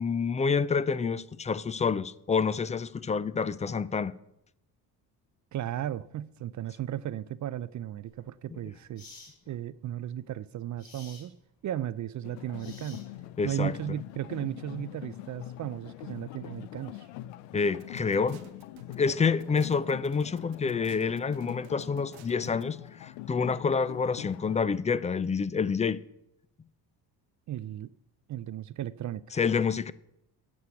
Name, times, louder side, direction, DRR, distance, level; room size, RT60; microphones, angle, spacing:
voice 1, 0.0-4.1 13.4-13.7 17.5-18.4 18.9-26.0 29.3-29.9, left 5 dB, 15° left, 0.3 m, -28 dB
voice 2, 5.5-9.1 9.5-11.4 11.6-13.0 13.4-17.1 27.5-27.9 28.3-29.2, right 12 dB, 45° right, 0.5 m, -35 dB
sound 1, 8.1-8.2 9.0-9.4 10.8-11.3 12.6-13.3, left 4 dB, 50° left, 4.9 m, -51 dB
sound 2, 12.2-24.6, left 14 dB, 85° left, 0.5 m, -44 dB
sound 3, 17.6-22.6, right 9 dB, 85° right, 1.2 m, -53 dB
8.5 x 6.4 x 8.1 m
supercardioid pair, 75°, 44 cm